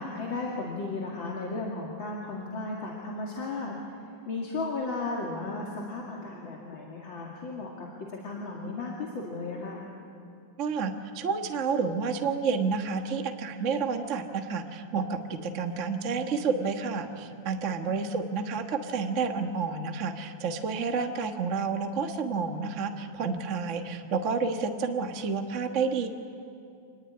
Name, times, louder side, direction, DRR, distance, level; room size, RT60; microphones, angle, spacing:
voice 1, 0.0-9.9 17.7-17.9, left 3 dB, 40° left, -2 dB, 2.7 m, -35 dB
voice 2, 10.6-26.1, right 5 dB, 45° right, 5 dB, 1.0 m, -30 dB
27.0 x 19.5 x 9.7 m, 2.5 s
omnidirectional pair, 3.5 m